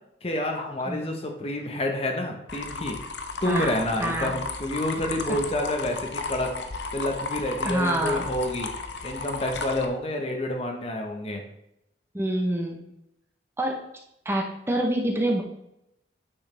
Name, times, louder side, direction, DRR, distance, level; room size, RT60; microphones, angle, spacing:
voice 1, 0.2-3.0 3.4-6.5 6.9-8.7 9.0-11.4, left 1 dB, 35° left, 3 dB, 1.0 m, -28 dB
voice 2, 0.9-1.2 3.4-3.7 4.0-4.3 5.3-5.4 7.6-8.3 12.1-12.9 13.6-13.8 14.2-15.4, right 1 dB, 15° right, 1 dB, 0.8 m, -26 dB
sound 1, 2.5-9.8, left 3 dB, 80° left, 0.7 m, -34 dB
8.9 x 6.4 x 3.4 m, 0.83 s
head